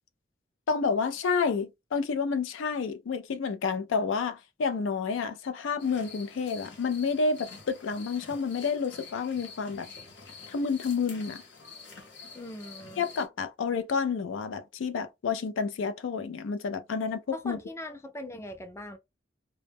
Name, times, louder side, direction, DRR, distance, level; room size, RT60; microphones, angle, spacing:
voice 1, 0.7-9.9 10.5-11.4 13.0-17.6, left 5 dB, 85° left, 0.4 m, -29 dB
sound 1, 5.8-13.3, left 5 dB, 65° left, 0.8 m, -48 dB
voice 2, 12.3-13.0 17.3-19.0, left 1 dB, 15° left, 0.4 m, -40 dB
2.1 x 2.0 x 3.3 m
head